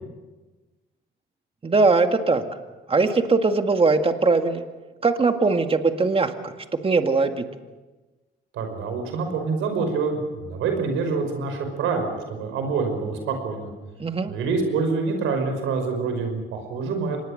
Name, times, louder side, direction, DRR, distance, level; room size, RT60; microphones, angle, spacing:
voice 1, 1.6-2.4 2.9-4.6 5.0-6.5 6.8-7.4 14.0-14.3, right 3 dB, 30° right, 6 dB, 2.0 m, -20 dB
voice 2, 8.5-13.7 14.3-17.2, right 4 dB, 90° right, 5 dB, 5.5 m, -26 dB
25.5 x 20.0 x 6.6 m, 1.2 s
cardioid pair, 90°, 20 cm